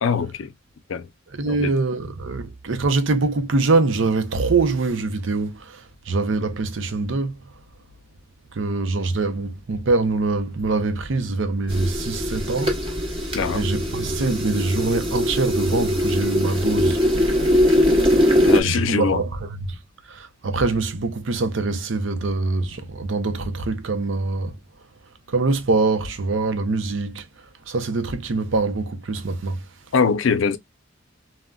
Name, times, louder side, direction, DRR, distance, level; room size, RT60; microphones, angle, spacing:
voice 1, 0.0-0.5 0.9-1.1 1.4-1.7 13.3-13.7 18.4-19.2 29.9-30.6, left 5 dB, 75° left, 0.5 m, -22 dB
voice 2, 1.3-7.4 8.5-12.8 13.5-17.0 18.6-19.8 20.1-24.6 25.3-27.3 27.7-29.7, right 3 dB, 65° right, 0.6 m, -24 dB
sound 1, 11.7-18.6, left 1 dB, 25° right, 0.9 m, -21 dB
3.6 x 2.1 x 2.2 m
head